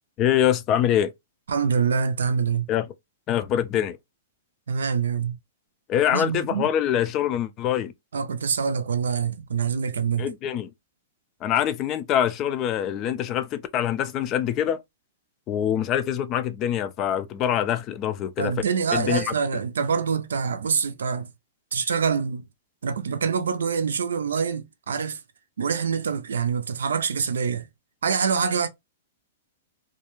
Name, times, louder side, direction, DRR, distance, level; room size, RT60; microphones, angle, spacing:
voice 1, 0.2-1.1 2.7-2.9 3.3-4.0 5.9-7.9 10.2-10.7 11.4-14.8 15.5-18.5 18.9-19.3, left 10 dB, 35° left, 0.3 m, -24 dB
voice 2, 1.5-2.6 4.7-5.4 6.1-6.7 8.1-10.3 18.4-21.3 21.7-22.5 22.8-25.2 25.6-27.7 28.0-28.7, right 6 dB, 80° right, 0.4 m, -25 dB
2.4 x 2.2 x 2.9 m
hypercardioid pair, 125°, 0 cm